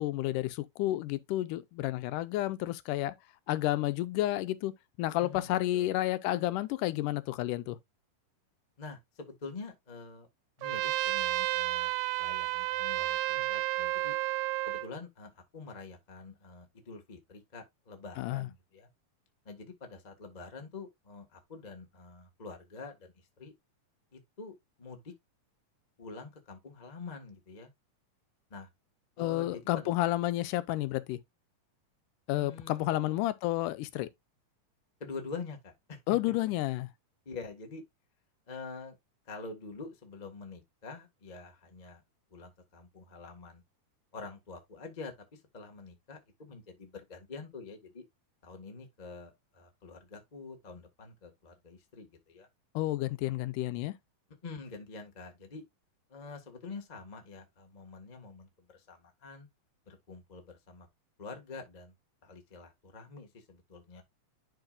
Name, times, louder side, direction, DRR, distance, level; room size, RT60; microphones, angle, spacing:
voice 1, 0.0-3.1 3.5-4.7 5.0-7.8 18.2-18.5 29.2-31.2 32.3-34.1 36.1-36.9 52.8-54.0, left 16 dB, 85° left, 2.1 m, -31 dB
voice 2, 5.2-5.9 8.8-10.3 10.6-11.9 12.2-14.1 14.7-18.9 19.4-23.5 24.1-25.1 26.0-27.7 28.5-28.7 29.2-29.9 32.3-32.8 35.0-36.0 37.2-37.8 38.5-39.0 39.2-42.0 42.3-43.6 44.1-48.0 48.4-52.5 54.4-55.6 56.1-59.5 59.9-60.9 61.2-61.9 62.2-64.0, left 4 dB, 45° left, 0.5 m, -46 dB
Trumpet, 10.6-14.9, right 18 dB, 90° right, 2.2 m, -31 dB
11.0 x 4.6 x 2.4 m
omnidirectional pair, 3.8 m